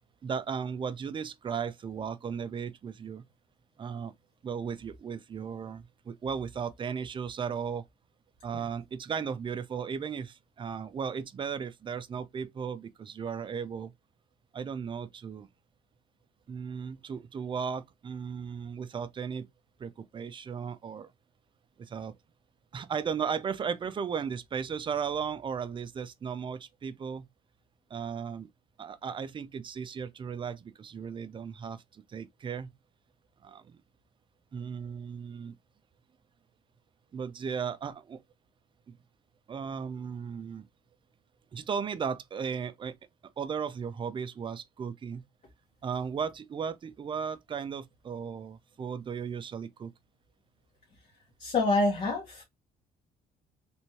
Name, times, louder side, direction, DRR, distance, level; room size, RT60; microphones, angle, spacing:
voice 1, 0.2-3.3 3.8-4.1 4.4-7.8 8.4-13.9 14.5-15.5 16.5-19.5 19.8-21.1 21.8-22.1 22.7-27.3 27.9-28.5 28.8-32.7 33.4-33.8 34.5-35.6 37.1-38.2 38.9-39.0 39.5-40.7 41.5-43.0 43.4-45.2 45.8-49.9, right 6 dB, 30° right, 0.5 m, -36 dB
voice 2, 51.4-52.4, left 2 dB, 45° left, 1.3 m, -27 dB
3.5 x 2.9 x 2.8 m
cardioid pair, 110°, 17 cm